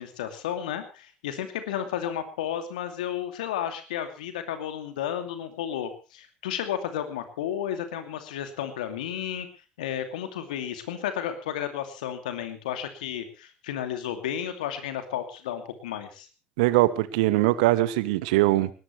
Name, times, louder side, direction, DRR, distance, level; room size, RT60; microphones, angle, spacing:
voice 1, 0.0-9.5 9.8-16.3, left 10 dB, 80° left, 8 dB, 2.6 m, -32 dB
voice 2, 16.6-18.7, right 17 dB, 75° right, 17 dB, 1.2 m, -22 dB
20.0 x 19.0 x 3.2 m, 0.32 s
hypercardioid pair, 55°, 4 cm